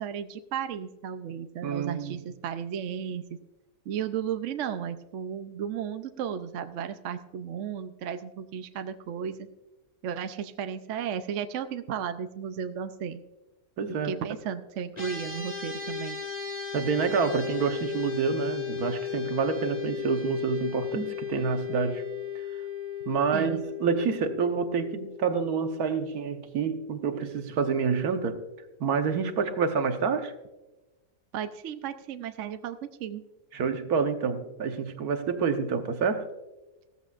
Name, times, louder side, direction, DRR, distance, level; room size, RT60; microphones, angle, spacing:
voice 1, 0.0-3.2 3.9-9.5 10.0-13.2 14.0-16.2 23.3-23.6 31.3-33.2, right 8 dB, 65° right, 0.9 m, -34 dB
voice 2, 1.6-2.2 13.8-14.2 16.7-22.0 23.1-28.4 28.8-30.3 33.5-36.3, right 5 dB, 80° right, 1.5 m, -28 dB
sound 1, 14.9-26.4, left 8 dB, 25° left, 1.8 m, -36 dB
15.5 x 14.0 x 2.4 m
omnidirectional pair, 1.6 m